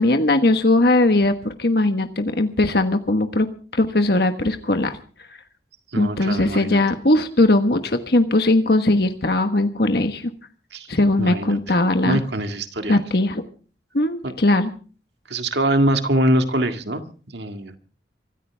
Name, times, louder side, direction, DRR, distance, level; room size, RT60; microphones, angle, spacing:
voice 1, 0.0-3.5 3.7-5.0 6.0-10.3 10.9-12.2 12.9-13.4 13.9-14.7, left 2 dB, 60° left, 7 dB, 1.3 m, -19 dB
voice 2, 5.9-6.8 10.7-10.9 11.2-11.6 12.0-13.0 14.2-14.3 15.3-17.0 17.3-17.8, right 1 dB, 70° right, 7 dB, 1.9 m, -23 dB
25.0 x 14.5 x 3.5 m, 0.40 s
head